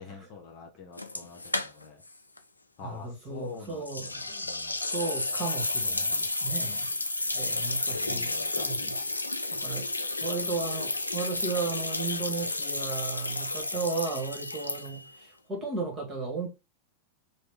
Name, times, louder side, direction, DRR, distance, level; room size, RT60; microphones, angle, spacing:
voice 1, 0.0-2.0 2.8-4.1 4.4-4.8 7.3-9.1, left 5 dB, 45° left, 1.0 m, -46 dB
sound 1, 1.0-2.1 2.4-2.5 3.9-15.2, left 2 dB, 80° left, 0.3 m, -32 dB
voice 2, 2.8-4.5 4.8-6.9 7.3-9.0 9.5-9.9 10.2-16.5, right 4 dB, 25° right, 1.6 m, -35 dB
3.2 x 2.5 x 3.6 m
figure-of-eight pair, 90°, 0 cm